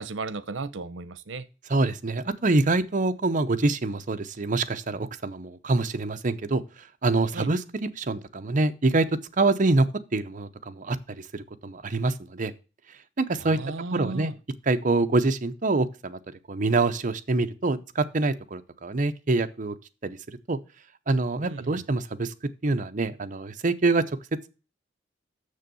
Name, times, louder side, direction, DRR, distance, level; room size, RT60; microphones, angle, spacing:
voice 1, 0.0-1.5 7.3-7.5 13.4-14.3 21.4-21.8, right 3 dB, 85° right, 0.8 m, -35 dB
voice 2, 1.7-6.6 7.0-9.1 9.4-12.5 13.2-13.6 13.9-14.3 14.7-16.2 16.5-19.7 20.0-20.6 21.1-22.3 22.6-24.0, right 3 dB, 45° right, 0.7 m, -25 dB
6.9 x 6.6 x 6.8 m
head